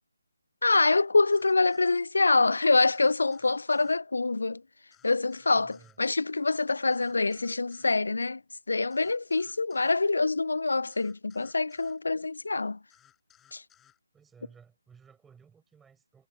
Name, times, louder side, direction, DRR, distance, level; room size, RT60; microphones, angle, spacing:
voice 1, 0.6-4.6 5.0-8.4 8.7-12.8 13.5-13.6, left 3 dB, 65° left, 0.3 m, -25 dB
sound 1, 1.3-2.0 2.9-4.0 4.9-6.0 6.9-8.0 8.9-10.0 10.9-12.0 12.9-14.0, left 10 dB, 10° left, 6.4 m, -62 dB
voice 2, 5.5-6.0 14.1-16.3, right 6 dB, 5° right, 5.3 m, -57 dB
figure-of-eight pair, 150°, 0 cm